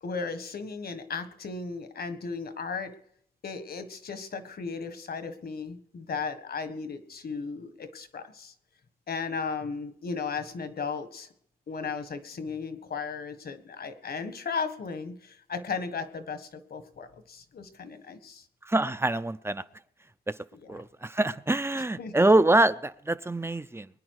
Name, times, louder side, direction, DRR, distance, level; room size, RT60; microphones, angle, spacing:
voice 1, 0.0-2.9 3.4-8.5 9.1-11.3 11.7-18.4 20.5-20.7 21.7-22.1, left 5 dB, 70° left, 9 dB, 1.5 m, -36 dB
voice 2, 18.6-19.6 20.3-20.4 20.7-23.9, right 2 dB, 15° right, 14 dB, 0.5 m, -25 dB
23.0 x 9.9 x 4.8 m, 0.68 s
wide cardioid pair, 95°, 16 cm